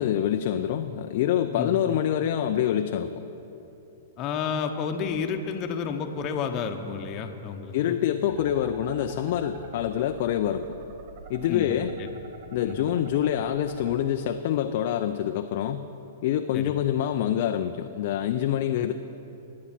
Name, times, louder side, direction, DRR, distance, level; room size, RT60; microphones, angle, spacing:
voice 1, 0.0-3.1 7.7-10.7 11.3-11.9 12.5-15.9 16.2-18.9, left 10 dB, 55° left, 6 dB, 0.5 m, -26 dB
voice 2, 4.2-8.0 11.5-11.7 12.0-12.1 12.6-12.8 16.5-16.7, left 6 dB, 35° left, 4 dB, 1.0 m, -30 dB
sound 1, 8.3-13.9, right 3 dB, 55° right, 1.1 m, -46 dB
19.0 x 8.6 x 4.4 m, 3.0 s
hypercardioid pair, 115°, 0 cm